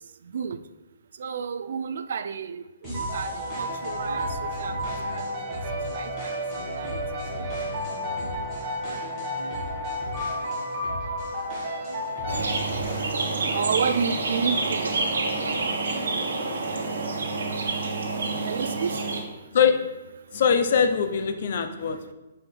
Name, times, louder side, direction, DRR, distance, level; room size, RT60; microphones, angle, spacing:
voice 1, 1.2-5.2 5.9-6.3 6.8-6.9 13.5-14.9 18.4-19.0, right 6 dB, 50° right, 0.3 m, -30 dB
sound 1, 2.8-13.5, left 1 dB, 15° left, 1.5 m, -39 dB
sound 2, 2.9-13.3, equal, 20° right, 1.2 m, -32 dB
sound 3, 12.3-19.2, right 3 dB, 85° right, 1.2 m, -28 dB
voice 2, 19.5-19.9 20.3-22.1, left 7 dB, 40° left, 0.5 m, -22 dB
5.3 x 4.5 x 5.2 m
hypercardioid pair, 180°, 0 cm